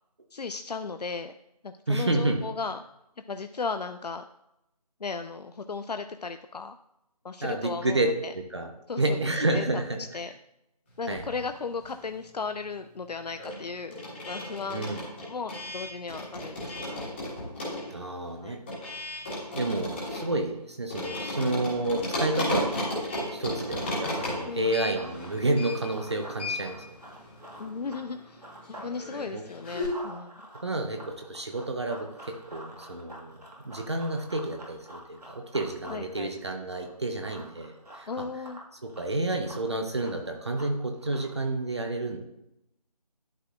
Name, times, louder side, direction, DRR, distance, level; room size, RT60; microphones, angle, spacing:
voice 1, 0.3-1.3 1.6-2.8 3.3-4.2 5.0-6.7 7.2-8.3 8.9-9.2 9.5-9.6 10.1-10.3 11.0-14.0 14.3-17.1 18.4-18.6 24.5-24.8 27.6-28.4 28.7-30.4 35.9-36.3 38.1-38.6, left 4 dB, 75° left, 8 dB, 0.4 m, -36 dB
voice 2, 1.9-2.4 7.4-8.1 8.5-8.7 9.0-10.0 11.1-11.2 14.7-15.0 17.9-18.6 19.6-22.7 23.3-26.8 29.3-29.4 30.5-33.3 33.6-38.1 38.8-42.2, right 2 dB, 45° right, 4 dB, 0.8 m, -30 dB
sound 1, 11.0-12.3 12.5-29.9, left 1 dB, 15° left, 1.6 m, -35 dB
Run, 23.6-28.9 29.3-41.5, right 1 dB, 70° right, 1.9 m, -48 dB
11.5 x 4.1 x 2.5 m, 0.85 s
figure-of-eight pair, 165°, 21 cm